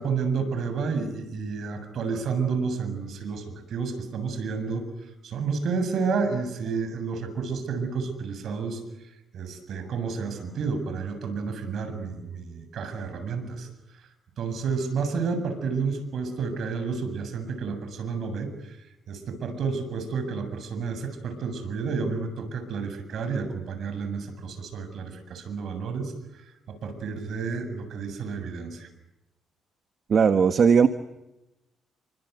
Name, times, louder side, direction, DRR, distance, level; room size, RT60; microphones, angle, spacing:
voice 1, 0.0-4.8 5.2-8.8 9.3-13.7 14.4-18.8 19.1-26.1 26.7-28.9, right 5 dB, 65° right, 9 dB, 7.4 m, -30 dB
voice 2, 30.1-30.9, right 6 dB, 50° right, 9 dB, 1.5 m, -18 dB
29.5 x 25.0 x 8.2 m, 0.92 s
cardioid pair, 90°, 0 cm